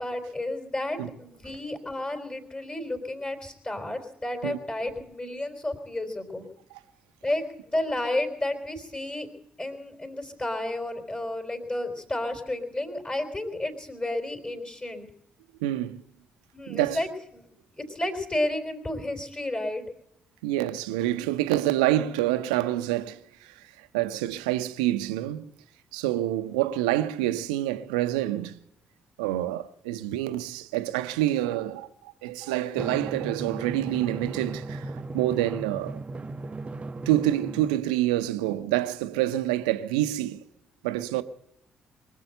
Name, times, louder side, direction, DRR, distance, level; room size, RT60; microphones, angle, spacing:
voice 1, 0.0-6.4 7.2-9.3 9.6-15.1 16.5-17.4 17.8-19.8, left 1 dB, 25° left, 4.0 m, -31 dB
voice 2, 15.6-16.0 16.7-17.0 20.4-25.5 25.9-28.6 29.2-36.0 37.1-40.4 40.8-41.2, right 14 dB, 75° right, 0.7 m, -27 dB
Drum, 32.8-37.8, right 3 dB, 30° right, 0.7 m, -36 dB
23.5 x 7.9 x 7.9 m
figure-of-eight pair, 40°, 4 cm